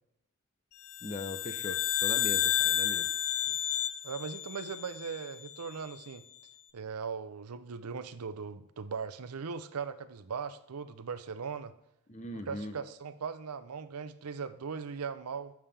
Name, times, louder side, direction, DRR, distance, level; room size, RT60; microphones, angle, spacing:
sound 1, 0.9-5.4, left 11 dB, 80° left, 0.5 m, -31 dB
voice 1, 1.0-3.1 12.1-12.7, left 2 dB, 30° left, 0.6 m, -40 dB
voice 2, 4.0-6.2 6.7-11.7 12.3-15.5, right 5 dB, 90° right, 0.6 m, -39 dB
9.0 x 7.2 x 3.4 m
head